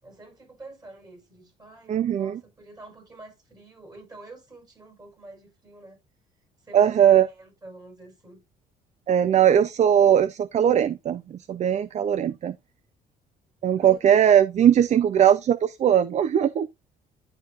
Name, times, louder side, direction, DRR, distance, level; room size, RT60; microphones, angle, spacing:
voice 1, 0.0-6.0 6.6-8.4 13.8-14.0, right 2 dB, 20° right, 4.8 m, -47 dB
voice 2, 1.9-2.4 6.7-7.3 9.1-12.5 13.6-16.7, right 9 dB, 45° right, 0.5 m, -20 dB
11.0 x 4.5 x 2.5 m
cardioid pair, 110°, 17 cm